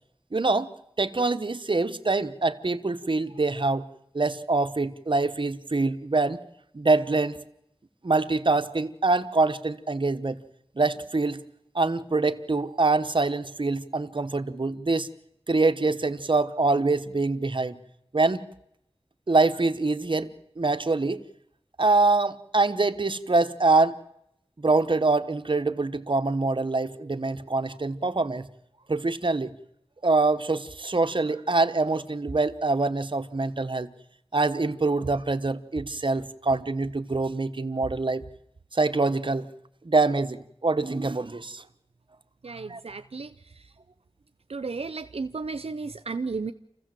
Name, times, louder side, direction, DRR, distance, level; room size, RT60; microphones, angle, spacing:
voice 1, 0.3-0.7 1.0-3.8 4.1-6.4 6.7-7.4 8.0-10.4 10.8-11.4 11.7-15.1 15.5-17.8 18.1-18.4 19.3-20.3 20.6-21.2 21.8-24.0 24.6-28.5 28.9-29.5 30.0-33.9 34.3-38.2 38.7-39.5 39.8-40.4 40.6-41.6 42.7-42.8, right 3 dB, 55° right, 9 dB, 1.1 m, -24 dB
voice 2, 42.4-43.3 44.5-46.5, right 4 dB, 85° right, 10 dB, 0.7 m, -33 dB
28.0 x 15.5 x 7.7 m, 0.79 s
wide cardioid pair, 60°, 10 cm